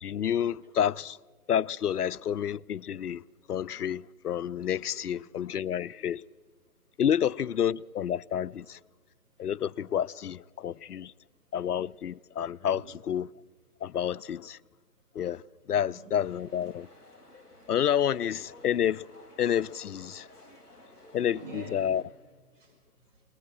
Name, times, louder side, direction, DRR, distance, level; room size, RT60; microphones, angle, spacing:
voice 1, 0.0-1.2 1.5-3.2 3.5-6.2 7.0-8.8 9.4-11.1 11.5-12.8 13.1-13.3 13.8-14.6 15.2-15.4 15.7-16.9 17.7-19.1 19.4-20.3 21.1-21.4 21.7-22.0, left 9 dB, 85° left, 0.5 m, -29 dB
voice 2, 4.9-5.5 5.9-6.0 12.7-12.8 15.7-16.1 20.2-20.5 21.2-22.0 22.5-23.2, right 2 dB, 55° right, 6.5 m, -48 dB
sound 1, 16.2-22.0, left 1 dB, 5° right, 0.5 m, -54 dB
22.0 x 19.5 x 6.1 m
figure-of-eight pair, 135°, 45 cm